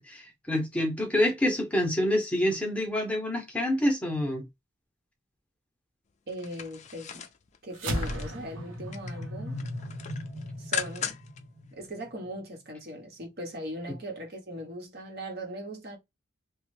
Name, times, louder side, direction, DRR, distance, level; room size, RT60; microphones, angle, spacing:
voice 1, 0.0-4.4, left 1 dB, 5° left, 0.8 m, -27 dB
sound 1, 6.3-8.4 8.7-9.2 9.6-11.4 11.8-11.9, left 8 dB, 35° left, 0.4 m, -37 dB
voice 2, 6.3-7.2 7.6-9.6 10.6-11.2 11.7-16.0, right 1 dB, 50° right, 1.0 m, -39 dB
sound 2, 7.7-12.4, equal, 90° right, 0.9 m, -36 dB
3.1 x 2.2 x 3.1 m
head